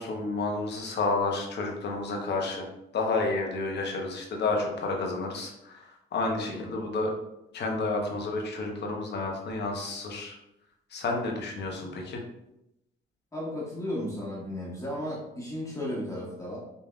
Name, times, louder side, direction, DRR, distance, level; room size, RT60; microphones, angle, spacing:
voice 1, 0.0-2.7 2.9-7.1 7.5-10.4 10.9-12.2, left 3 dB, 60° left, 1 dB, 1.0 m, -30 dB
voice 2, 13.3-16.6, left 1 dB, 15° left, -5 dB, 1.4 m, -34 dB
5.3 x 2.7 x 2.4 m, 0.85 s
cardioid pair, 90°, 20 cm